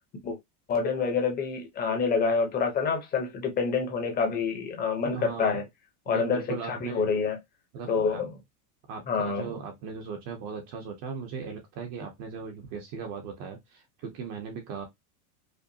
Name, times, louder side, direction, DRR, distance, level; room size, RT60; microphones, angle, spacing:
voice 1, 0.7-5.6 6.1-7.4 7.9-8.3 9.1-9.5, left 5 dB, 20° left, 0.9 m, -27 dB
voice 2, 5.0-5.6 6.1-7.1 7.7-8.3 8.9-14.9, right 6 dB, 35° right, 0.8 m, -38 dB
5.1 x 2.1 x 2.8 m
supercardioid pair, 155°, 46 cm